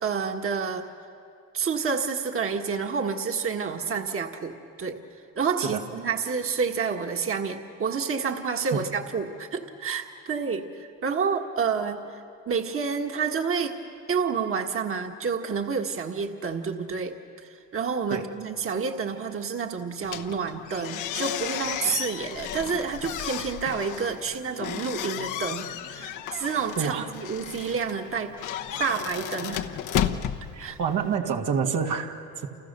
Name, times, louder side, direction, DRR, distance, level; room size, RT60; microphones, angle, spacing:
voice 1, 0.0-0.8 1.5-5.0 5.4-12.2 12.5-13.8 14.1-17.2 17.4-28.3 28.8-29.8 30.6-30.8, right 5 dB, 45° right, 3 dB, 1.6 m, -29 dB
sound 1, 20.0-31.2, left 10 dB, 85° left, 1.1 m, -33 dB
voice 2, 26.8-27.1 30.5-32.5, right 6 dB, 80° right, 2 dB, 2.1 m, -28 dB
29.5 x 29.5 x 6.8 m, 2.6 s
cardioid pair, 90°, 30 cm